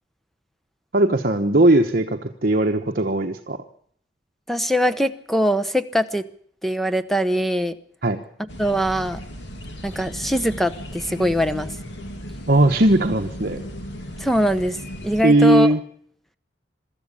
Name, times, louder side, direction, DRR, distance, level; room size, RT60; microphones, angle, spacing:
voice 1, 0.9-3.6 8.0-8.2 12.5-13.6 15.2-15.8, right 1 dB, 50° right, 4 dB, 1.1 m, -18 dB
voice 2, 4.5-6.2 6.6-7.7 8.6-9.2 9.8-11.7 14.2-14.8 15.0-15.7, equal, ahead, 12 dB, 0.9 m, -22 dB
sound 1, 8.5-15.2, equal, 70° left, 2.7 m, -36 dB
23.5 x 13.5 x 8.4 m, 0.63 s
head